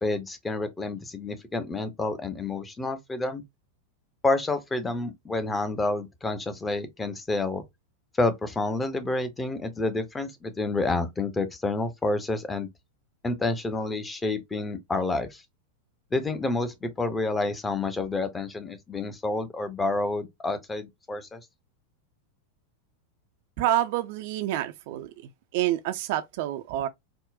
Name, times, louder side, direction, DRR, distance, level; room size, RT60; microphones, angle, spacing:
voice 1, 0.0-3.4 4.2-7.6 8.2-12.7 13.2-15.4 16.1-21.4, left 2 dB, 15° left, 0.5 m, -29 dB
voice 2, 23.6-25.1 25.5-26.9, right 13 dB, 50° right, 0.3 m, -27 dB
3.6 x 2.0 x 2.4 m
figure-of-eight pair, 90°, 0 cm